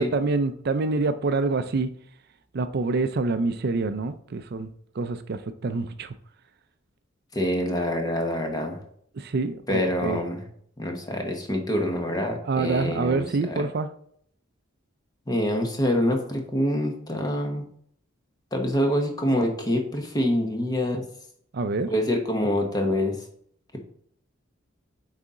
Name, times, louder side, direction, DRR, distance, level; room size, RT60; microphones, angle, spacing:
voice 1, 0.0-1.9 2.5-4.7 5.0-6.1 9.2-10.2 12.5-13.9 21.5-21.9, right 3 dB, 55° right, 0.4 m, -26 dB
voice 2, 7.3-8.8 9.7-10.4 10.8-13.6 15.3-17.6 18.5-21.0 21.9-23.2, left 1 dB, 20° left, 1.1 m, -26 dB
8.3 x 4.1 x 3.7 m
head